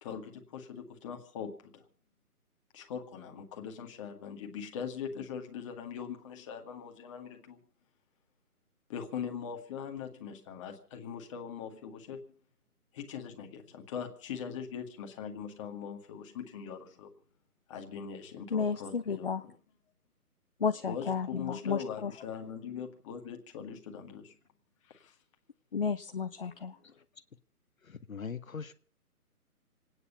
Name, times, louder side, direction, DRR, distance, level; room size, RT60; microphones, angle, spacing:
voice 1, 0.0-1.9 2.7-7.6 8.9-12.2 12.9-17.1 17.7-19.6 20.8-24.3 24.8-25.2, left 7 dB, 20° left, 3 dB, 2.0 m, -41 dB
voice 2, 18.5-19.4 20.6-22.1 25.7-26.7, left 5 dB, 40° left, 9 dB, 0.7 m, -32 dB
voice 3, 27.8-28.7, left 6 dB, 65° left, 11 dB, 1.2 m, -41 dB
26.5 x 9.9 x 5.5 m, 0.43 s
figure-of-eight pair, 150°, 45 cm